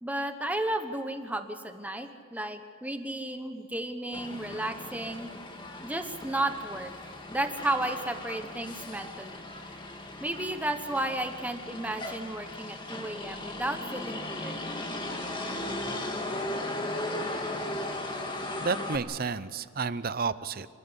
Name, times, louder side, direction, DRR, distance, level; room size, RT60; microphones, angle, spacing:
voice 1, 0.0-5.3 5.8-6.9 7.3-9.4 10.2-14.6, right 1 dB, 10° right, 7 dB, 1.2 m, -33 dB
Motor vehicle (road), 4.1-19.0, left 1 dB, 25° left, 2.0 m, -37 dB
voice 2, 18.6-20.7, right 5 dB, 45° right, 15 dB, 0.7 m, -31 dB
26.5 x 13.5 x 9.9 m, 2.2 s
head